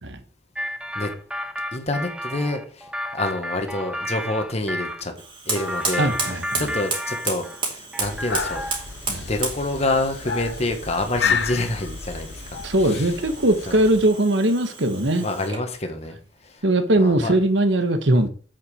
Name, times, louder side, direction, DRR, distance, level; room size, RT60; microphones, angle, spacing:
sound 1, 0.6-5.0 5.6-7.6 7.9-8.9, equal, 5° right, 0.7 m, -32 dB
voice 1, 1.7-5.1 5.4-8.7 9.3-13.1 13.7-13.8 15.2-16.2 16.4-16.7 17.0-17.3, left 2 dB, 35° left, 1.4 m, -27 dB
Fire, 5.1-15.7, right 4 dB, 25° right, 2.6 m, -33 dB
voice 2, 6.0-6.6 9.1-9.2 11.3-11.4 12.6-15.3 16.6-18.3, right 1 dB, 65° right, 1.2 m, -20 dB
sound 2, 8.0-14.1, left 6 dB, 60° left, 0.9 m, -31 dB
8.2 x 5.9 x 5.0 m
head